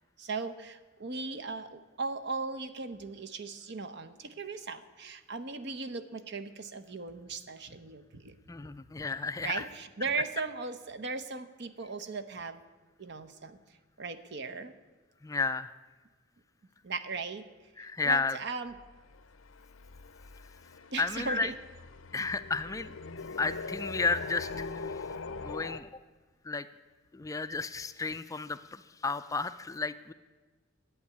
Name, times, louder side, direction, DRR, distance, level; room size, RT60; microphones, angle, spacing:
voice 1, 0.2-8.4 9.4-12.6 13.0-14.7 16.8-17.4 18.0-18.8 20.9-21.5, right 4 dB, 55° right, 9 dB, 0.8 m, -38 dB
voice 2, 8.5-9.6 15.2-15.7 17.8-18.4 21.0-21.5 22.1-22.9 23.4-24.6 25.4-25.9 26.5-26.7 27.1-30.1, left 4 dB, 15° left, 12 dB, 0.3 m, -32 dB
sound 1, 18.7-25.8, left 4 dB, 80° left, 0.6 m, -42 dB
11.0 x 8.9 x 9.6 m, 1.3 s
head